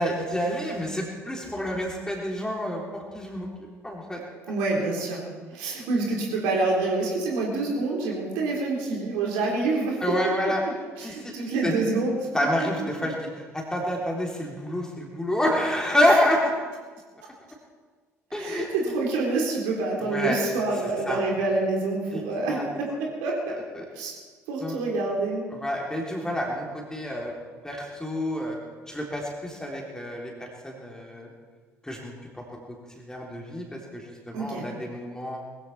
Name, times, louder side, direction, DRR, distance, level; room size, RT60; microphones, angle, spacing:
voice 1, 0.0-3.5 3.8-4.2 10.0-10.6 11.0-11.3 11.6-11.7 12.3-16.5 18.3-18.9 20.1-20.4 21.1-21.2 22.1-22.2 22.5-22.7 23.7-23.8 24.6-24.8 25.6-27.3 27.6-28.6 28.9-31.3 31.8-35.4, left 1 dB, 10° left, -1 dB, 3.5 m, -28 dB
voice 2, 4.5-5.2 5.5-10.0 11.0-12.3 16.1-16.2 18.4-23.6 23.9-24.2 24.5-25.4 34.3-34.7, right 3 dB, 65° right, -1 dB, 4.0 m, -27 dB
20.5 x 15.0 x 4.4 m, 1.5 s
figure-of-eight pair, 55°, 8 cm